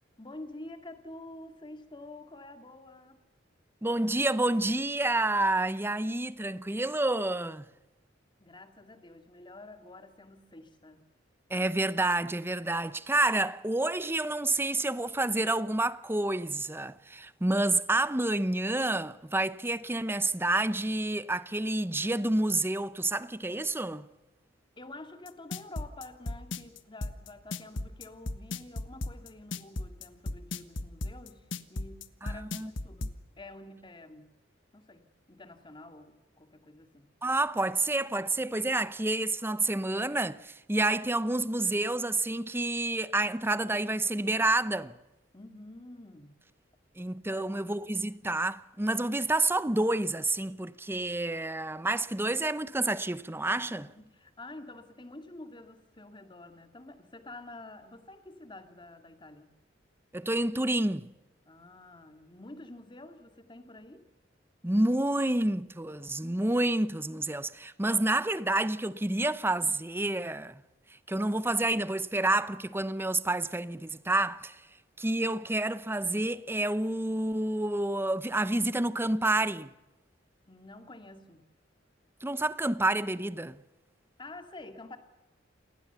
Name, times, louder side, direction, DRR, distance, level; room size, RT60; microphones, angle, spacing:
voice 1, 0.2-3.2 8.4-11.0 24.8-34.3 34.7-37.1 45.3-46.4 47.3-47.9 53.5-59.5 61.5-64.1 80.5-81.4 84.2-85.0, left 2 dB, 25° left, 2.3 m, -48 dB
voice 2, 3.8-7.7 11.5-24.1 32.2-32.7 37.2-45.0 47.0-53.9 60.1-61.1 64.6-70.6 71.1-74.6 75.0-79.7 82.2-83.6, right 2 dB, 10° right, 0.8 m, -29 dB
sound 1, 25.3-33.1, left 2 dB, 85° left, 1.4 m, -35 dB
28.5 x 19.0 x 7.0 m
head